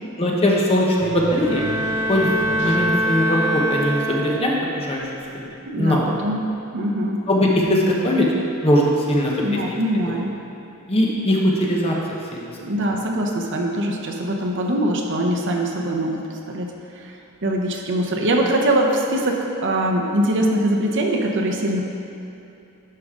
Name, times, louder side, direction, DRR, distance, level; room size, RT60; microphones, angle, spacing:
voice 1, 0.2-1.6 2.1-5.1 5.4-6.0 7.3-8.3 8.6-9.8 10.1-10.2 10.9-12.5, left 1 dB, 25° left, -3 dB, 1.0 m, -20 dB
sound 1, 1.0-3.3, left 3 dB, 55° left, 0.7 m, -38 dB
Bowed string instrument, 1.3-4.7, equal, 15° right, 1.0 m, -24 dB
voice 2, 5.7-7.3 9.4-10.4 12.6-17.2 17.4-21.8, right 1 dB, 55° right, 1 dB, 0.8 m, -23 dB
11.0 x 5.2 x 3.7 m, 2.8 s
head